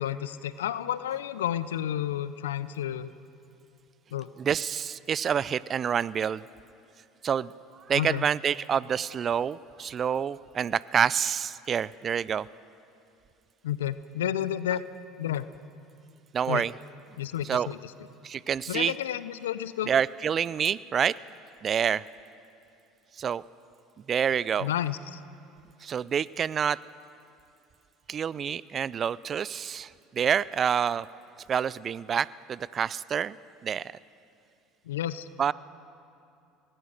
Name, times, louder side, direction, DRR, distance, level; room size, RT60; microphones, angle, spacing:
voice 1, 0.0-3.1 4.1-4.3 7.9-8.2 13.6-14.8 15.2-15.5 16.5-16.7 17.2-17.9 18.7-19.9 24.6-25.2 34.9-35.3, left 11 dB, 85° left, 15 dB, 0.5 m, -31 dB
voice 2, 4.4-6.4 7.2-7.5 7.9-12.5 16.3-16.7 17.4-17.7 18.2-18.9 19.9-21.2 21.6-22.0 23.2-23.4 24.1-24.7 25.8-26.8 28.1-31.1 31.5-33.4 33.6-33.9 35.4-35.5, right 8 dB, 40° right, 20 dB, 0.4 m, -27 dB
24.0 x 18.5 x 6.6 m, 2.6 s
hypercardioid pair, 75°, 0 cm